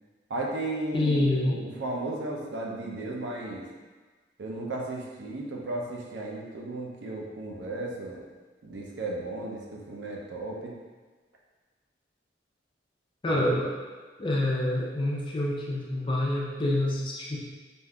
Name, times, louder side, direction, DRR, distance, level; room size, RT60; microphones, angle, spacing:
voice 1, 0.3-3.6 4.4-8.2 8.6-10.7 13.3-13.6, right 2 dB, 80° right, -1 dB, 0.5 m, -35 dB
voice 2, 0.9-1.6 13.2-13.7 14.2-17.4, left 1 dB, 30° left, -3 dB, 0.5 m, -27 dB
3.5 x 2.6 x 2.2 m, 1.4 s
head